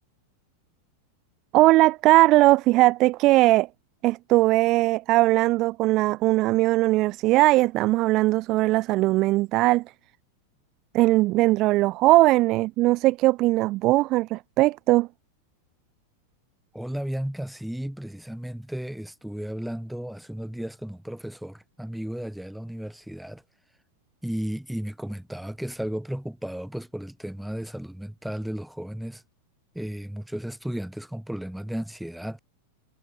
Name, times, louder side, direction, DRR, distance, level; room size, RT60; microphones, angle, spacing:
voice 1, 1.5-3.7 4.0-9.8 10.9-15.1, right 19 dB, 40° right, 1.2 m, -20 dB
voice 2, 16.7-23.4 24.2-29.2 29.7-32.4, equal, ahead, 5.2 m, -34 dB
figure-of-eight pair, 90°, 0 cm